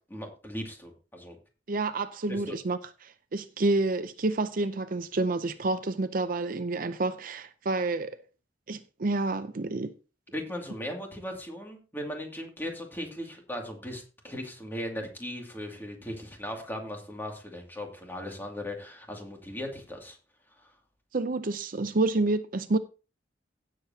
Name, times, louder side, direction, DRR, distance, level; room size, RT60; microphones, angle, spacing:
voice 1, 0.1-1.4 2.3-2.6 10.3-20.2 20.5-20.7, equal, 10° left, 2.4 m, -38 dB
voice 2, 1.7-8.2 8.7-9.9 21.1-22.8, right 2 dB, 50° right, 0.6 m, -29 dB
16.5 x 7.6 x 2.8 m
head